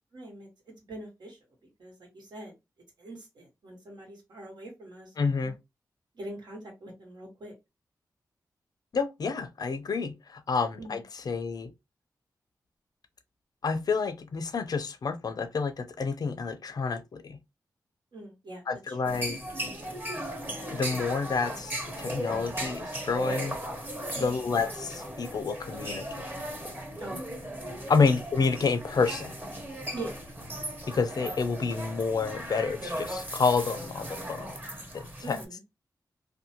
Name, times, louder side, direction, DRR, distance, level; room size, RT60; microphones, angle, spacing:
voice 1, 0.1-1.4 1.8-2.5 3.0-5.1 5.4-5.5 6.1-7.5 10.8-11.0 18.1-19.2 24.1-24.6 27.0-27.2 29.9-30.6 35.2-35.6, right 2 dB, 80° right, 1.3 m, -43 dB
voice 2, 5.2-5.5 8.9-11.7 13.6-17.4 18.7-19.4 20.7-23.6 24.2-26.2 27.9-29.4 30.9-34.5 34.9-35.4, left 4 dB, 60° left, 0.5 m, -29 dB
sound 1, 19.1-35.5, right 1 dB, 25° right, 1.0 m, -37 dB
2.7 x 2.2 x 2.8 m
cardioid pair, 65°, 7 cm